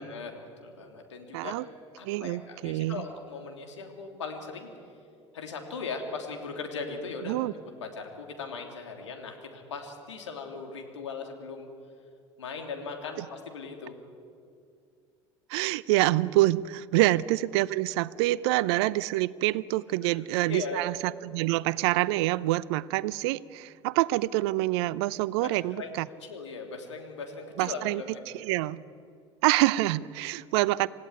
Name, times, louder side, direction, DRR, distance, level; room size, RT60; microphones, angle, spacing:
voice 1, 0.0-1.5 2.0-4.7 5.3-7.4 7.8-11.7 12.4-13.9 20.0-20.2 20.5-20.8 25.4-28.2, left 4 dB, 80° left, 3 dB, 3.2 m, -39 dB
voice 2, 1.3-1.7 2.0-3.0 7.3-7.5 13.2-13.3 15.5-26.1 27.6-28.0 28.3-28.8 29.4-30.9, right 17 dB, 65° right, 19 dB, 0.7 m, -26 dB
27.5 x 16.5 x 9.6 m, 2.4 s
figure-of-eight pair, 70°, 15 cm